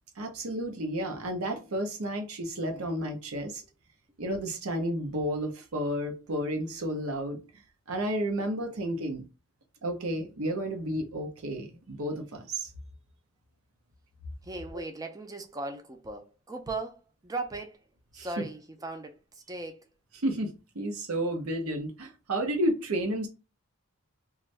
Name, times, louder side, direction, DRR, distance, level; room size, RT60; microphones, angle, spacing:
voice 1, 0.2-3.6 4.2-7.4 7.9-9.2 9.8-12.7 14.7-14.8 18.2-18.5 20.2-23.3, right 1 dB, 75° right, 0.7 m, -32 dB
voice 2, 14.4-17.8 18.1-19.9, right 2 dB, 15° right, 0.4 m, -38 dB
2.6 x 2.3 x 3.2 m
head